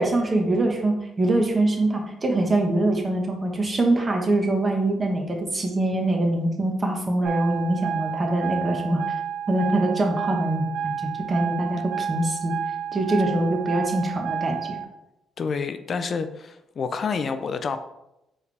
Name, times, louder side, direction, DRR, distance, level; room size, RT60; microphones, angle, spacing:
voice 1, 0.0-9.0 9.5-12.6 12.9-14.6, right 2 dB, 30° right, 2 dB, 1.0 m, -23 dB
sound 1, 7.2-14.8, right 8 dB, 90° right, 0.7 m, -30 dB
voice 2, 15.4-17.8, left 5 dB, 50° left, 9 dB, 0.3 m, -28 dB
4.6 x 3.3 x 3.3 m, 0.89 s
cardioid pair, 90°, 0 cm